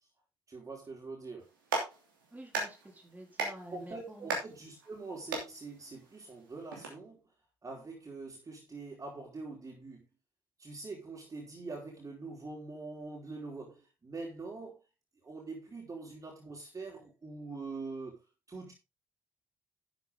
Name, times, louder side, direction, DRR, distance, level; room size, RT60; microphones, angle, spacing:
voice 1, 0.5-1.5 3.7-7.2 7.6-10.1 10.6-14.8 15.2-18.2 18.5-18.7, right 3 dB, 30° right, 4.5 m, -44 dB
Clapping, 1.4-6.9, right 3 dB, 80° right, 2.8 m, -39 dB
voice 2, 2.3-4.4, right 1 dB, 15° right, 5.1 m, -49 dB
11.5 x 8.3 x 3.7 m
figure-of-eight pair, 45°, 11 cm